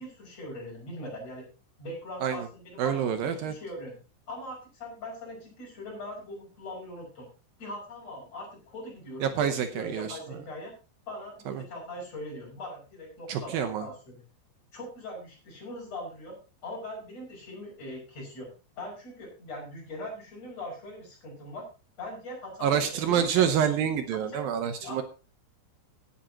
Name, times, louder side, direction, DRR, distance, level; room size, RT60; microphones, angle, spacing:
voice 1, 0.0-1.5 1.8-4.0 4.3-7.3 7.6-10.7 11.1-14.2 14.7-16.4 16.6-18.5 18.8-21.7 22.0-23.3 24.1-24.5 24.8-25.0, left 1 dB, 35° left, -2 dB, 7.0 m, -41 dB
voice 2, 2.8-3.5 9.2-10.2 11.5-11.6 13.3-13.9 22.6-25.0, right 8 dB, 75° right, 8 dB, 2.3 m, -27 dB
17.0 x 10.5 x 2.9 m, 0.32 s
omnidirectional pair, 4.9 m